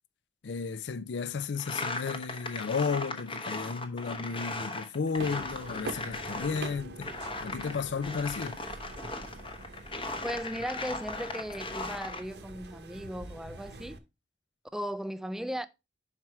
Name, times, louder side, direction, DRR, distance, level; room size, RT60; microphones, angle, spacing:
voice 1, 0.4-7.1 7.4-8.6, left 5 dB, 75° left, 0.5 m, -33 dB
sound 1, 1.6-6.8 7.0-12.2, left 2 dB, 30° left, 0.9 m, -38 dB
sound 2, 5.2-14.0, right 2 dB, 60° right, 0.8 m, -45 dB
voice 2, 10.2-14.0 14.7-15.7, equal, ahead, 0.3 m, -37 dB
5.7 x 4.6 x 4.7 m
head